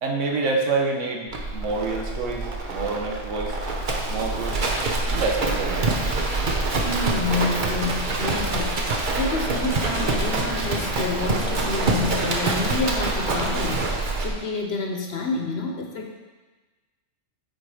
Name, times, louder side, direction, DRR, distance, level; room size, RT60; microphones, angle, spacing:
voice 1, 0.0-3.6 4.1-4.6 5.1-6.0, right 3 dB, 75° right, 1 dB, 1.3 m, -27 dB
Livestock farm animals working animals, 1.3-14.3, right 2 dB, 45° right, 0.9 m, -25 dB
voice 2, 6.8-16.1, left 3 dB, 60° left, 2 dB, 1.1 m, -29 dB
8.0 x 4.5 x 4.9 m, 1.2 s
omnidirectional pair, 1.3 m